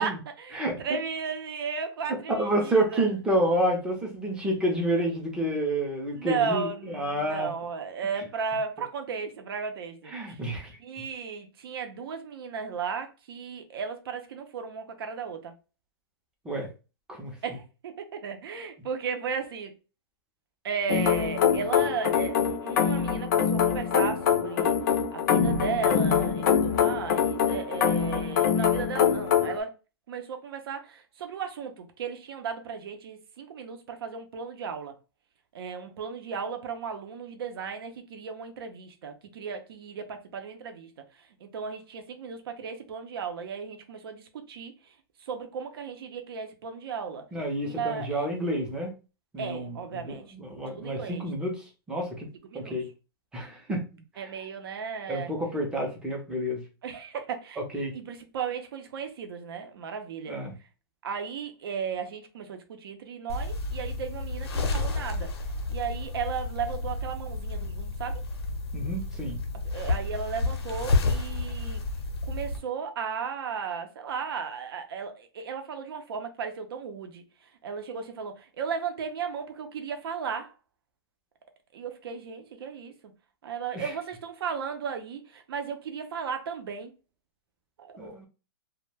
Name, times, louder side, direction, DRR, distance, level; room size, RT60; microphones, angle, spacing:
voice 1, 0.0-3.1 6.1-10.4 10.8-15.5 17.4-19.7 20.6-24.8 25.1-29.7 30.1-34.9 35.5-40.9 41.4-44.7 45.3-47.3 47.6-48.3 49.4-50.2 50.7-51.3 52.5-52.8 54.2-55.3 56.8-60.4 61.0-65.3 65.7-68.2 69.7-71.8 72.3-77.2 77.6-80.5 81.7-82.9 83.4-86.9 87.8-88.3, right 6 dB, 65° right, 0.6 m, -35 dB
voice 2, 2.1-7.5 10.1-10.8 16.4-16.7 17.1-17.6 47.3-48.9 49.3-52.3 52.5-52.9 53.3-54.3 55.1-56.6 57.6-57.9 60.3-60.5 68.7-69.4 83.7-83.9 88.0-88.3, right 1 dB, 5° right, 0.5 m, -29 dB
sound 1, 20.9-29.6, left 8 dB, 45° left, 0.4 m, -24 dB
sound 2, 63.3-72.6, left 2 dB, 80° left, 0.7 m, -30 dB
2.2 x 2.1 x 3.1 m
hypercardioid pair, 150°, 13 cm